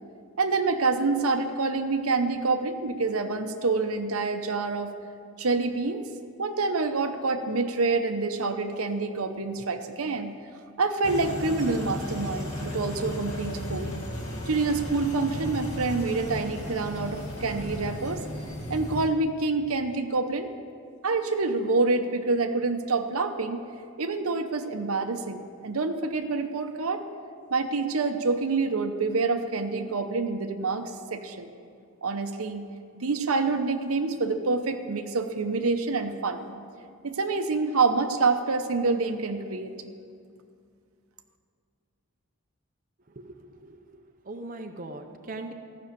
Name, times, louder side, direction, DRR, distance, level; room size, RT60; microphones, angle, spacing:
voice 1, 0.4-4.9 5.4-6.0 6.4-10.3 10.8-13.9 14.5-18.2 18.7-20.5 21.0-23.6 24.0-27.0 27.5-31.5 32.0-32.6 32.9-36.5 37.0-39.7, right 3 dB, 90° right, 7 dB, 0.8 m, -27 dB
sound 1, 11.0-19.1, left 1 dB, 35° left, 1.7 m, -35 dB
voice 2, 43.1-45.5, right 2 dB, 40° right, 4 dB, 0.7 m, -41 dB
15.0 x 6.3 x 8.4 m, 2.3 s
head